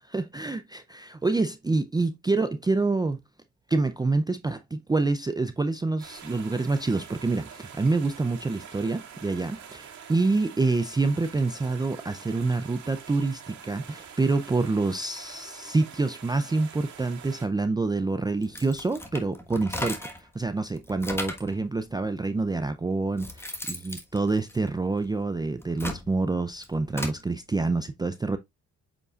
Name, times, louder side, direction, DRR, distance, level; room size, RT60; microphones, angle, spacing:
voice 1, 0.1-3.2 3.7-28.4, right 3 dB, 15° right, 0.5 m, -27 dB
sound 1, 6.0-17.5, right 7 dB, 70° right, 2.3 m, -46 dB
sound 2, 18.4-20.3 20.7-21.6 22.4-22.5 22.9-25.1 25.5-27.2, left 1 dB, 10° left, 1.3 m, -36 dB
8.0 x 5.2 x 2.4 m
cardioid pair, 90°, 30 cm